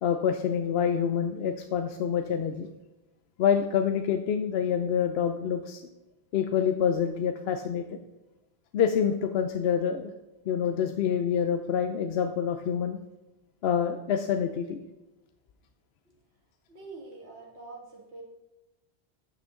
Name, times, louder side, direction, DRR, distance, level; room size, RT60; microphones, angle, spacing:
voice 1, 0.0-2.7 3.4-5.8 6.3-8.0 8.7-10.1 10.5-13.0 13.6-14.8, left 8 dB, 75° left, 7 dB, 0.8 m, -27 dB
voice 2, 16.7-18.2, right 3 dB, 90° right, -2 dB, 2.3 m, -45 dB
9.0 x 5.9 x 3.7 m, 1.0 s
omnidirectional pair, 1.1 m